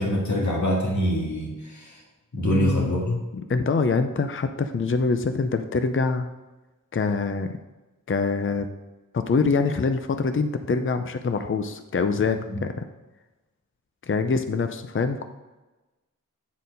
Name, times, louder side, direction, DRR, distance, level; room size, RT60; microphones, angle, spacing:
voice 1, 0.0-2.0 2.3-3.2 12.5-12.6, equal, 60° left, -3 dB, 1.9 m, -25 dB
voice 2, 2.5-2.9 3.5-6.3 6.9-7.6 8.1-8.7 9.1-12.8 14.0-15.2, left 4 dB, 40° left, 8 dB, 0.6 m, -24 dB
9.4 x 4.4 x 5.3 m, 1.1 s
wide cardioid pair, 75°, 32 cm